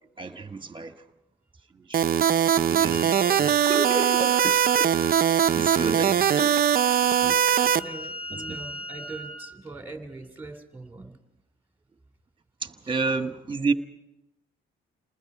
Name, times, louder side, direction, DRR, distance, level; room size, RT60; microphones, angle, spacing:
voice 1, 0.2-1.0 1.7-2.1 2.7-4.9 5.5-6.6 6.9-7.7 8.3-8.6 12.6-13.7, right 3 dB, 25° right, 1.5 m, -32 dB
sound 1, 1.9-7.8, right 9 dB, 50° right, 0.7 m, -21 dB
Wind instrument woodwind instrument, 2.9-9.5, equal, 30° left, 2.5 m, -39 dB
voice 2, 6.4-6.7 7.5-11.2, right 2 dB, 10° right, 2.8 m, -41 dB
29.0 x 20.0 x 4.9 m
cardioid pair, 90°, 20 cm